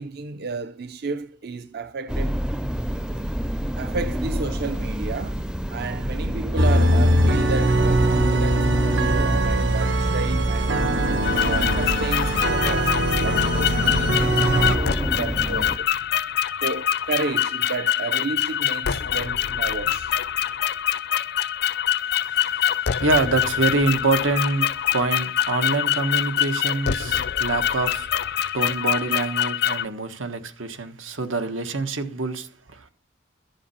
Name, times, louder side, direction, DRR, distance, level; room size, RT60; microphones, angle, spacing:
voice 1, 0.0-2.4 3.0-3.5 3.8-5.4 5.7-10.8 11.4-15.9 16.6-20.1, right 4 dB, 55° right, 0.5 m, -32 dB
sound 1, 2.1-15.8, equal, 5° right, 0.4 m, -28 dB
sound 2, 6.6-14.7, right 1 dB, 70° right, 1.2 m, -21 dB
sound 3, 11.2-29.8, left 10 dB, 55° left, 0.5 m, -25 dB
voice 2, 22.0-28.1 28.4-32.9, right 3 dB, 90° right, 1.4 m, -26 dB
13.0 x 7.5 x 5.6 m
head